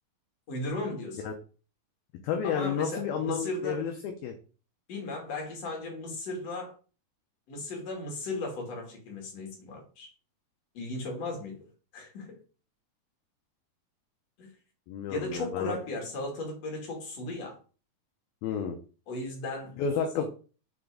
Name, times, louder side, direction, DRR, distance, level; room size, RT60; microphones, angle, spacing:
voice 1, 0.5-1.2 2.4-3.8 4.9-6.7 7.5-10.1 10.7-11.6 11.9-12.4 14.4-14.5 15.1-17.6 19.1-19.8 20.1-20.3, left 2 dB, 45° left, 0 dB, 3.0 m, -36 dB
voice 2, 2.2-4.3 14.9-15.8 18.4-18.8 19.8-20.2, left 7 dB, 75° left, 4 dB, 2.5 m, -31 dB
6.9 x 4.3 x 5.0 m, 0.37 s
omnidirectional pair, 4.7 m